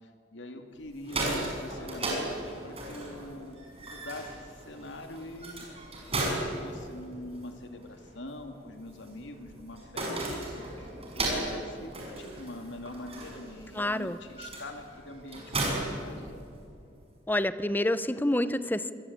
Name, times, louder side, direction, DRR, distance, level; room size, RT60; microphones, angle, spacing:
voice 1, 0.0-3.6 3.8-5.7 6.2-16.3, left 1 dB, 85° left, 5 dB, 2.3 m, -44 dB
sound 1, 0.9-16.8, right 2 dB, 35° right, 6.4 m, -36 dB
voice 2, 13.7-14.2 17.3-18.9, left 1 dB, 10° left, 13 dB, 0.8 m, -28 dB
25.5 x 20.0 x 8.5 m, 2.3 s
head